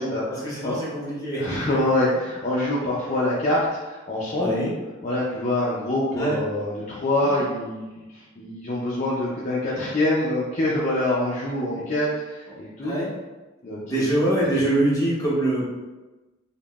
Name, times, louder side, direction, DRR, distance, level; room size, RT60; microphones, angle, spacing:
voice 1, 0.0-1.8 4.4-4.8 6.1-6.4 7.2-7.4 12.8-13.1 13.9-15.6, right 1 dB, 20° left, -8 dB, 0.9 m, -24 dB
voice 2, 1.4-4.6 5.0-13.0 13.6-14.0, left 1 dB, 40° left, -7 dB, 0.4 m, -25 dB
3.5 x 2.1 x 2.3 m, 1.1 s
head